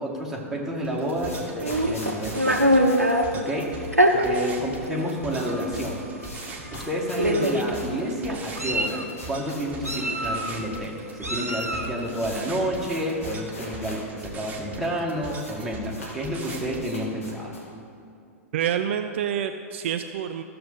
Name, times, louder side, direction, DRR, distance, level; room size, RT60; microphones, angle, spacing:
voice 1, 0.0-2.9 3.3-6.0 6.7-17.5, equal, 5° right, -4 dB, 1.9 m, -30 dB
sound 1, 0.7-4.0 4.2-4.3 4.6-4.7 5.0-10.2 10.5-10.6 11.3-11.4 11.6-14.3 14.5-14.6 14.8-15.6 15.9-17.8, left 1 dB, 70° left, 2.6 m, -43 dB
sound 2, 0.8-16.8, right 2 dB, 20° right, 1.5 m, -40 dB
Meow, 1.6-3.3 3.9-4.1 5.0-5.1 5.5-5.7 6.7-6.8 7.2-7.7 8.3-9.0 9.8-10.6 11.2-11.9, equal, 90° right, 0.9 m, -23 dB
voice 2, 18.5-20.4, right 9 dB, 55° right, 8 dB, 0.4 m, -27 dB
14.5 x 6.6 x 4.0 m, 2.5 s
figure-of-eight pair, 100°, 8 cm